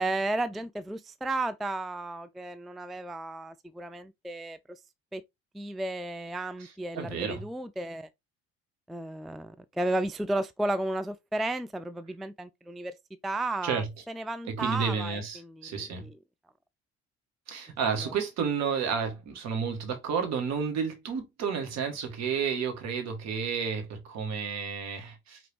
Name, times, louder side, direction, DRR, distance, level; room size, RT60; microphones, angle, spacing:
voice 1, 0.0-4.6 5.1-5.2 5.5-8.1 8.9-12.9 13.2-16.1 18.0-18.1, right 2 dB, ahead, 0.3 m, -33 dB
voice 2, 6.6-7.4 13.6-13.9 14.4-16.1 17.5-25.4, right 6 dB, 55° right, 1.6 m, -31 dB
5.0 x 2.9 x 3.1 m
hypercardioid pair, 60°, 32 cm